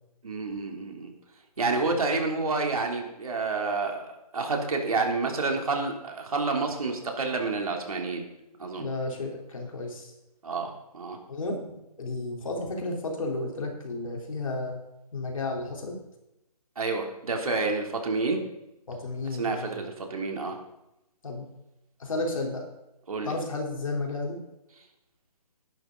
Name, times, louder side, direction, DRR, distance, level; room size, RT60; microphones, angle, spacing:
voice 1, 0.2-1.1 1.6-8.2 8.6-8.9 10.4-11.2 16.8-18.4 19.4-20.5 23.1-23.3, right 3 dB, 60° right, 2 dB, 3.3 m, -29 dB
voice 2, 8.8-10.1 11.3-14.8 15.1-16.0 18.9-19.7 21.2-21.5 22.0-22.7 23.2-24.4, left 2 dB, 55° left, 0 dB, 4.0 m, -32 dB
16.5 x 11.5 x 4.0 m, 0.91 s
hypercardioid pair, 175°, 20 cm